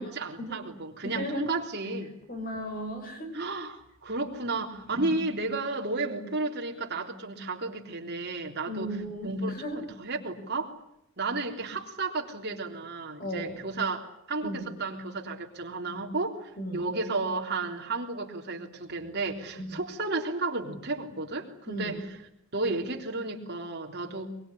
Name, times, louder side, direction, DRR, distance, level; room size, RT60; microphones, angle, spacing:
voice 1, 0.0-2.1 3.3-10.7 11.2-22.2 22.5-24.3, right 3 dB, 50° right, 2 dB, 3.5 m, -33 dB
voice 2, 1.0-1.5 2.3-3.3 4.5-4.6 4.9-5.3 8.7-9.8 13.2-13.6 14.4-14.7 16.6-16.9 19.6-19.7 21.7-21.9, equal, 40° left, 5 dB, 5.1 m, -35 dB
23.0 x 22.5 x 10.0 m, 0.77 s
head